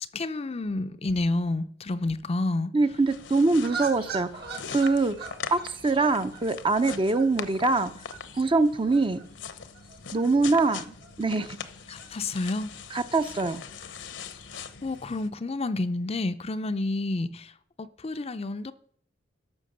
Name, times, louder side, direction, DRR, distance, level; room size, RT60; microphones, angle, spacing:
voice 1, 0.0-2.7 11.9-12.7 14.8-17.5 17.8-18.7, left 2 dB, 35° left, 0.5 m, -29 dB
voice 2, 2.7-4.3 4.7-5.2 5.5-7.9 8.4-9.2 10.1-11.6 12.9-13.6, right 3 dB, 25° right, 0.6 m, -24 dB
sound 1, 2.9-15.3, left 6 dB, 70° left, 0.9 m, -42 dB
sound 2, 3.6-15.0, right 5 dB, 55° right, 1.9 m, -44 dB
12.5 x 6.1 x 6.6 m
head